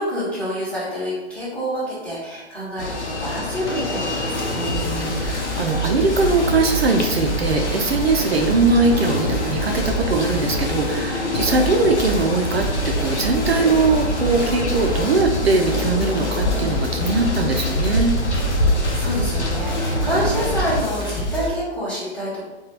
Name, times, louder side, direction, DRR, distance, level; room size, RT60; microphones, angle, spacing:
voice 1, 0.0-4.4 18.9-22.4, equal, 5° left, -10 dB, 1.0 m, -27 dB
sound 1, 2.8-20.8, left 2 dB, 85° left, 0.7 m, -26 dB
sound 2, 3.6-21.5, right 1 dB, 25° left, 0.4 m, -27 dB
voice 2, 4.6-18.1, right 3 dB, 65° right, 3 dB, 0.5 m, -21 dB
3.8 x 2.3 x 2.8 m, 1.1 s
figure-of-eight pair, 120°, 34 cm